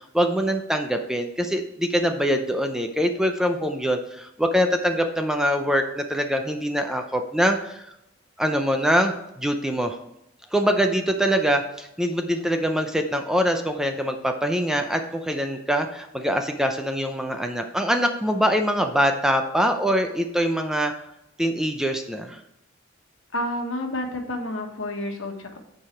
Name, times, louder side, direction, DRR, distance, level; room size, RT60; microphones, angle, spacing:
voice 1, 0.0-7.8 8.4-10.0 10.5-20.9 21.4-22.4, equal, 5° right, 5 dB, 0.5 m, -24 dB
voice 2, 23.3-25.6, left 1 dB, 70° left, 3 dB, 1.4 m, -30 dB
8.7 x 4.8 x 4.5 m, 0.83 s
head